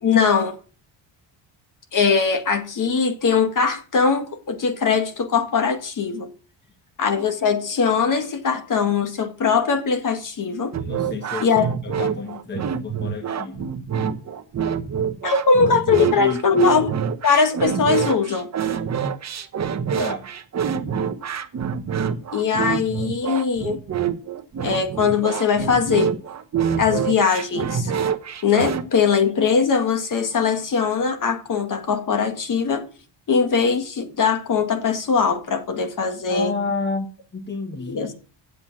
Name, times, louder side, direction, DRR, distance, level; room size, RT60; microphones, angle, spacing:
voice 1, 0.0-0.6 1.9-6.3 7.0-10.7 11.4-11.7 12.0-12.1 15.2-16.9 17.2-18.5 22.3-23.8 24.6-26.1 26.8-27.9 28.4-32.9 33.3-36.5 37.9-38.1, left 5 dB, 40° left, 1.9 m, -21 dB
sound 1, 10.7-28.8, right 7 dB, 35° right, 1.0 m, -26 dB
voice 2, 10.8-13.7 16.0-16.4 20.0-20.3 36.3-37.1 37.3-38.3, left 4 dB, 20° left, 1.2 m, -30 dB
8.3 x 7.4 x 7.4 m
cardioid pair, 120°, 48 cm